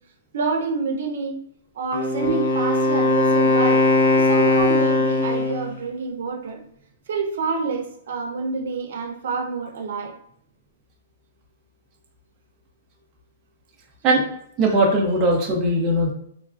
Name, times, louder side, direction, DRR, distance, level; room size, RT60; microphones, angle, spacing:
voice 1, 0.3-1.4 1.7-6.6 7.1-10.2, right 4 dB, 55° right, 4 dB, 0.6 m, -28 dB
Wind instrument woodwind instrument, 1.9-5.8, left 2 dB, 65° left, 0.5 m, -19 dB
voice 2, 14.6-16.1, right 1 dB, 15° right, -3 dB, 0.3 m, -19 dB
3.0 x 2.3 x 2.4 m, 0.71 s
hypercardioid pair, 175°, 0 cm